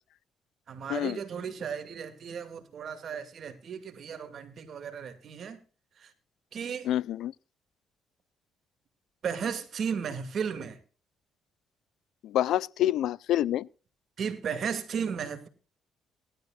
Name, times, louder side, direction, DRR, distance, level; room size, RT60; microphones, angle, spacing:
voice 1, 0.7-5.6 6.0-6.1 6.5-6.9 9.2-10.8 14.2-15.5, right 7 dB, 60° right, 2.5 m, -35 dB
voice 2, 6.8-7.3 12.2-13.7, left 12 dB, 80° left, 0.5 m, -27 dB
19.5 x 12.0 x 2.5 m
cardioid pair, 90°, 0 cm